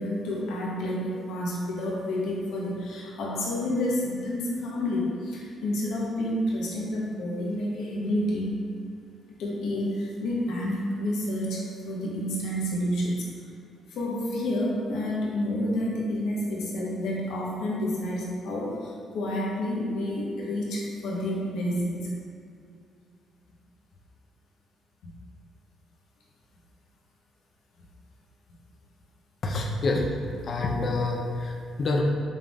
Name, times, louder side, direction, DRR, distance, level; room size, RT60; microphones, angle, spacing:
voice 1, 0.0-8.6 9.4-13.3 13.9-22.1, left 1 dB, 85° left, -4 dB, 0.9 m, -29 dB
voice 2, 29.4-32.0, left 2 dB, 50° left, 0 dB, 0.6 m, -27 dB
5.4 x 3.9 x 2.4 m, 2.4 s
cardioid pair, 90°, 0 cm